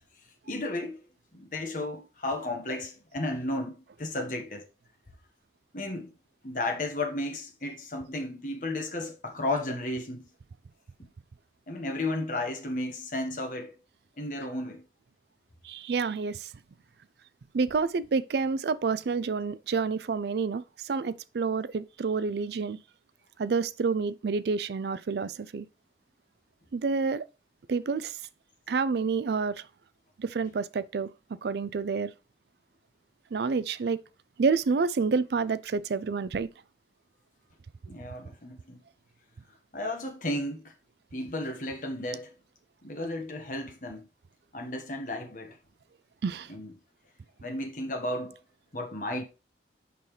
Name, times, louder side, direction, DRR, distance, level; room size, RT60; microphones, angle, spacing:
voice 1, 0.4-1.1 1.3-4.6 5.7-6.1 6.4-10.3 11.7-13.7 14.2-14.8 37.9-38.8 39.7-40.7 41.1-42.3 42.8-44.0 44.5-45.6 46.5-46.7 47.4-48.4 48.7-49.2, left 1 dB, 45° left, 1.4 m, -33 dB
voice 2, 15.6-16.5 17.5-22.8 23.4-25.7 26.7-27.2 27.7-28.2 28.7-29.7 30.2-31.1 31.4-32.1 33.3-34.0 34.4-36.5 46.2-46.5, right 4 dB, 65° right, 0.4 m, -28 dB
6.8 x 5.6 x 3.3 m
head